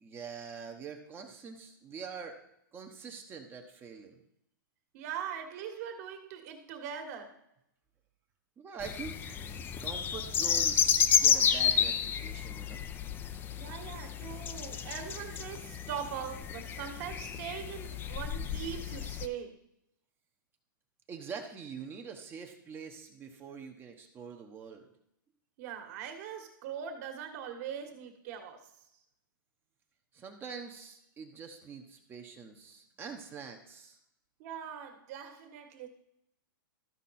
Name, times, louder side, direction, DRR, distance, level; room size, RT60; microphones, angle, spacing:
voice 1, 0.0-2.4 2.7-4.2 8.6-9.4 9.8-12.8 21.1-24.9 30.1-34.0, right 6 dB, 20° right, 4 dB, 0.9 m, -45 dB
voice 2, 4.9-7.4 13.6-19.6 25.6-28.7 34.4-35.9, right 8 dB, 45° right, 5 dB, 1.7 m, -41 dB
sound 1, 8.8-19.3, left 8 dB, 20° left, 0.5 m, -31 dB
13.5 x 5.2 x 4.2 m, 0.78 s
hypercardioid pair, 145°, 11 cm